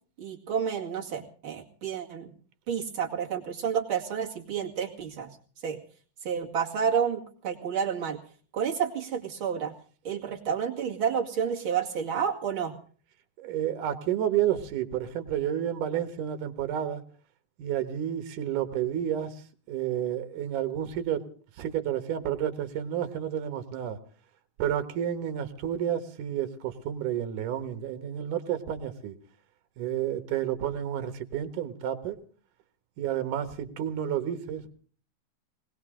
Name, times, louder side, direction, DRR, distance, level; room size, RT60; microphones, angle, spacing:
voice 1, 0.2-2.3 2.7-5.4 5.6-5.8 6.2-8.2 8.5-9.7 10.0-12.8, right 7 dB, 40° right, -1 dB, 2.8 m, -30 dB
voice 2, 13.4-17.0 17.6-19.3 19.7-21.2 21.6-24.0 24.6-29.1 29.8-32.2 33.0-34.7, right 10 dB, 75° right, 9 dB, 2.9 m, -30 dB
20.0 x 19.0 x 3.7 m, 0.42 s
omnidirectional pair, 3.8 m